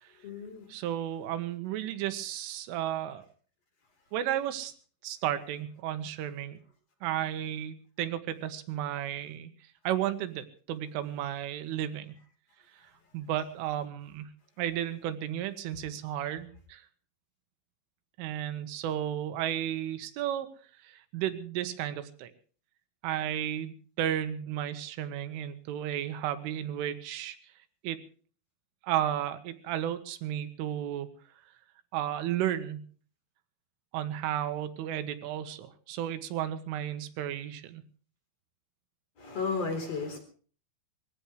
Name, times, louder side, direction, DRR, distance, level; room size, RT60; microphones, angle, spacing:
voice 1, 0.2-0.7 39.2-40.2, left 4 dB, 35° left, 5 dB, 4.7 m, -33 dB
voice 2, 0.7-3.3 4.1-4.7 5.0-6.6 7.0-9.5 9.9-12.1 13.1-14.3 14.6-16.8 18.2-20.5 20.8-22.3 23.0-27.4 27.8-28.0 28.8-31.1 31.9-32.9 33.9-37.8, right 11 dB, 75° right, 9 dB, 3.8 m, -33 dB
23.0 x 16.5 x 3.3 m, 0.42 s
omnidirectional pair, 5.9 m